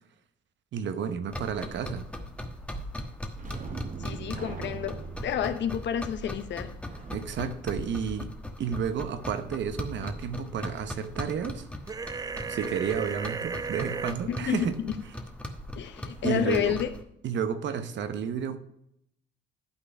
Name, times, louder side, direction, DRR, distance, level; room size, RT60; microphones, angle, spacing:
voice 1, 0.7-2.1 7.1-8.3 8.6-11.7 12.5-14.8 16.2-16.8 17.2-18.6, right 7 dB, 65° right, 1.0 m, -31 dB
sound 1, 1.3-17.0, left 1 dB, 5° left, 1.2 m, -39 dB
sound 2, 3.4-8.7 16.1-16.2 16.6-16.8, right 6 dB, 40° right, 1.1 m, -43 dB
voice 2, 4.0-6.7 14.3-15.0 15.8-16.9, left 9 dB, 65° left, 1.0 m, -30 dB
sound 3, 11.9-14.1, right 5 dB, 20° right, 0.4 m, -35 dB
11.5 x 4.1 x 5.8 m
cardioid pair, 90°, 20 cm